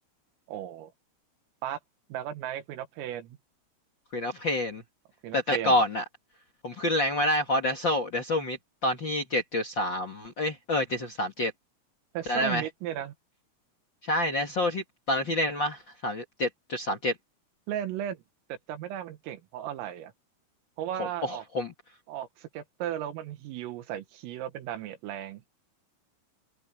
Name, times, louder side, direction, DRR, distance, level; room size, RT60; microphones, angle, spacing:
voice 1, 0.5-0.9 1.6-1.8 2.1-3.4 5.2-5.8 12.1-13.1 17.7-18.2 18.5-20.1 20.8-21.4 22.1-25.5, right 11 dB, 90° right, 4.3 m, -35 dB
voice 2, 4.1-4.8 5.3-6.0 6.6-11.5 12.3-12.6 14.0-17.1 21.0-21.7, left 1 dB, 60° left, 1.2 m, -28 dB
omnidirectional pair, 5.8 m